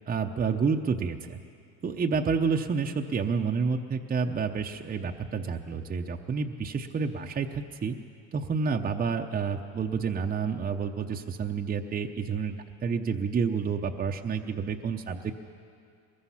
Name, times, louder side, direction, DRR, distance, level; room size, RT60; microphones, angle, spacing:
voice 1, 0.1-1.4 1.8-8.0 8.3-12.6 12.8-15.3, right 5 dB, 20° right, 3 dB, 0.7 m, -29 dB
23.0 x 21.0 x 5.7 m, 2.4 s
supercardioid pair, 115°, 48 cm